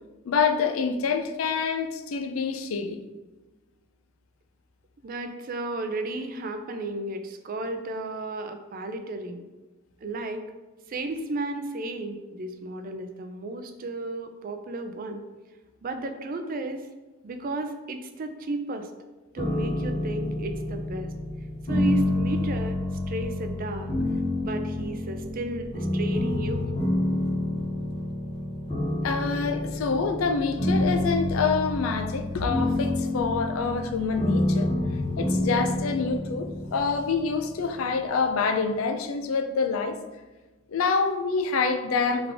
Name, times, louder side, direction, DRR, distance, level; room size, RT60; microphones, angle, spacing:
voice 1, 0.3-3.0 29.0-34.7 35.2-40.0 40.7-42.3, left 5 dB, 90° left, 7 dB, 0.4 m, -26 dB
voice 2, 5.0-9.5 10.0-10.5 10.9-15.2 15.8-16.9 17.2-18.9 19.3-21.1 21.7-23.9 24.4-26.7, right 2 dB, 45° right, 7 dB, 0.4 m, -33 dB
sound 1, 19.4-38.3, left 1 dB, 30° left, 0.7 m, -28 dB
3.7 x 3.5 x 3.4 m, 1.2 s
head